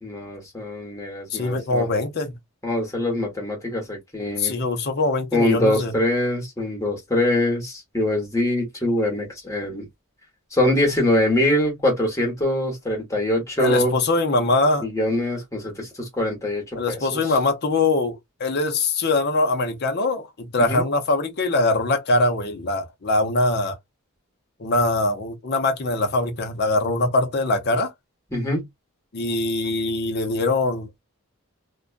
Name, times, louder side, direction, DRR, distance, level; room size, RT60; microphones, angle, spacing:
voice 1, 0.0-1.9 2.6-4.5 5.3-9.9 10.5-13.9 14.8-17.4 20.7-20.8 28.3-28.6, left 1 dB, 15° left, 1.0 m, -23 dB
voice 2, 1.3-2.4 4.4-5.9 13.6-14.9 16.8-23.7 24.6-27.9 29.1-31.0, left 2 dB, 45° left, 0.6 m, -22 dB
2.4 x 2.2 x 2.3 m
head